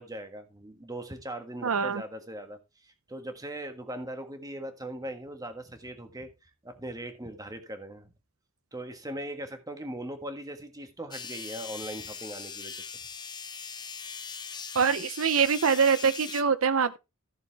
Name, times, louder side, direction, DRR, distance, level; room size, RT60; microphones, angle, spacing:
voice 1, 0.0-8.1 8.7-12.7, right 1 dB, 15° right, 1.6 m, -40 dB
voice 2, 1.6-2.0 14.7-17.0, right 6 dB, 75° right, 0.7 m, -24 dB
sound 1, 11.1-16.4, left 6 dB, 20° left, 0.7 m, -40 dB
14.5 x 6.8 x 3.5 m
head